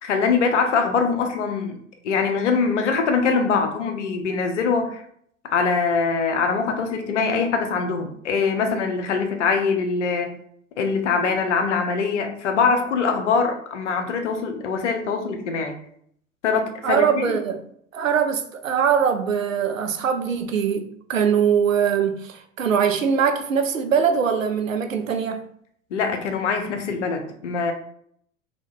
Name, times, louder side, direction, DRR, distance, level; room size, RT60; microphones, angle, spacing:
voice 1, 0.0-1.8 2.0-5.0 5.4-10.3 10.8-15.8 16.4-17.4 25.9-27.7, left 5 dB, 65° left, 0.7 m, -23 dB
voice 2, 16.8-17.6 17.9-25.5, right 7 dB, 80° right, 0.5 m, -22 dB
2.9 x 2.3 x 3.5 m
figure-of-eight pair, 85°, 39 cm